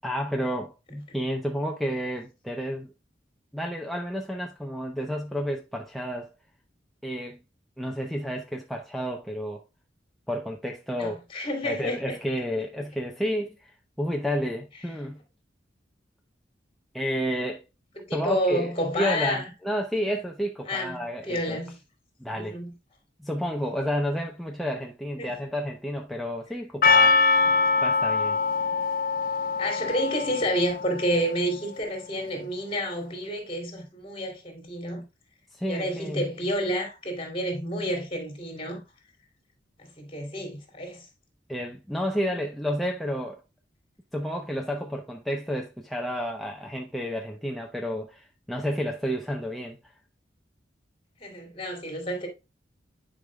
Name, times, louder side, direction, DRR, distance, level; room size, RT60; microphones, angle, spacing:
voice 1, 0.0-2.9 3.5-6.3 7.0-7.4 7.8-9.6 10.3-11.2 11.6-15.2 16.9-17.6 18.1-21.6 22.2-22.5 23.2-27.3 27.8-28.4 35.5-36.3 41.5-43.4 44.1-49.8, equal, ahead, 0.7 m, -31 dB
voice 2, 10.9-12.2 18.0-19.5 20.6-21.8 22.3-22.7 25.2-25.4 29.6-35.0 35.7-38.8 39.8-41.1 51.2-52.3, equal, 30° left, 2.8 m, -30 dB
Percussion, 26.8-31.4, left 4 dB, 50° left, 0.6 m, -23 dB
9.9 x 5.2 x 2.3 m
head